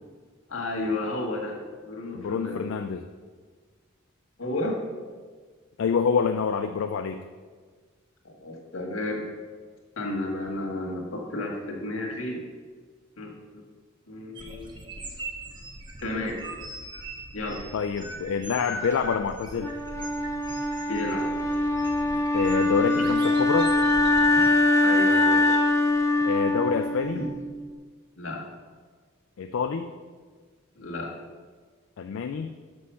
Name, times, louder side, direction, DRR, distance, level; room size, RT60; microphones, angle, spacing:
voice 1, 0.5-1.6 1.8-2.7 4.4-4.8 8.2-9.3 10.0-12.4 13.2-13.6 14.1-14.7 16.0-16.4 17.3-17.7 20.8-21.3 24.8-25.6 28.2-28.4 30.8-31.1, left 2 dB, 90° left, 0 dB, 1.6 m, -32 dB
voice 2, 2.1-3.0 5.8-7.2 17.7-19.7 22.3-23.7 26.3-27.2 29.4-29.9 32.0-32.5, left 5 dB, 75° left, 7 dB, 0.4 m, -27 dB
sound 1, 14.4-24.5, right 1 dB, 25° right, 0.9 m, -40 dB
Wind instrument woodwind instrument, 19.6-27.6, left 2 dB, 15° left, 0.5 m, -23 dB
6.3 x 6.2 x 5.5 m, 1.5 s
head